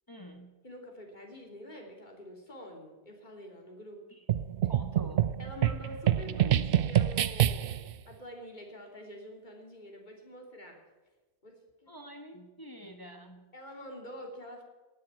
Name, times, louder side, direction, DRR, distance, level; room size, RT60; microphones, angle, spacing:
voice 1, 0.1-0.5 4.7-5.3 11.9-13.4, equal, 20° left, 4 dB, 1.2 m, -47 dB
voice 2, 0.6-4.0 5.4-10.8 11.4-12.1 13.5-14.6, equal, 40° left, 1 dB, 3.2 m, -46 dB
sound 1, 4.3-7.9, right 11 dB, 60° right, 0.7 m, -27 dB
18.5 x 7.6 x 8.8 m, 1.2 s
omnidirectional pair, 1.2 m